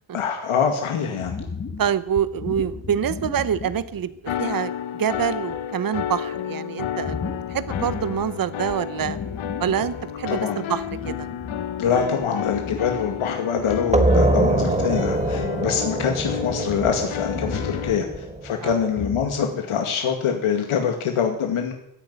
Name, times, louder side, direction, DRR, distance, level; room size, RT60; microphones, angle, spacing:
voice 1, 0.1-1.4 10.3-10.6 11.8-18.1 18.4-21.7, left 7 dB, 90° left, 4 dB, 2.2 m, -24 dB
sound 1, 1.2-4.3 4.7-4.8 5.3-5.6 7.0-8.4 8.7-10.4 10.7-19.3, left 5 dB, 30° left, 1.3 m, -35 dB
voice 2, 1.8-7.2 7.5-9.2 9.6-11.3 15.6-15.8 18.6-18.8, right 8 dB, 45° right, 15 dB, 0.8 m, -26 dB
sound 2, 4.3-18.0, left 10 dB, 70° left, 1.0 m, -31 dB
sound 3, 13.9-19.3, right 2 dB, 15° right, 1.3 m, -24 dB
15.5 x 9.9 x 9.4 m, 0.79 s
wide cardioid pair, 160°, 49 cm